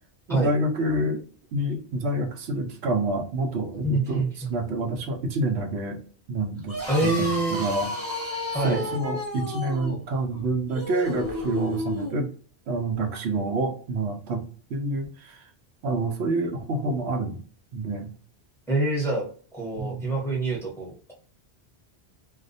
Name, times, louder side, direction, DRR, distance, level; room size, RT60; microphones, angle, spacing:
voice 1, 0.3-1.2 1.5-6.0 6.3-7.9 8.6-12.3 12.7-15.4 15.8-17.4 17.7-18.1 19.8-20.0, right 2 dB, 80° right, 3 dB, 0.9 m, -28 dB
voice 2, 3.8-4.5 6.9-7.7 8.5-8.8 18.7-19.3 19.5-21.1, right 2 dB, 5° left, -3 dB, 0.8 m, -26 dB
sound 1, 6.6-12.2, left 2 dB, 20° right, 0.5 m, -32 dB
2.3 x 2.1 x 2.5 m, 0.43 s
omnidirectional pair, 1.1 m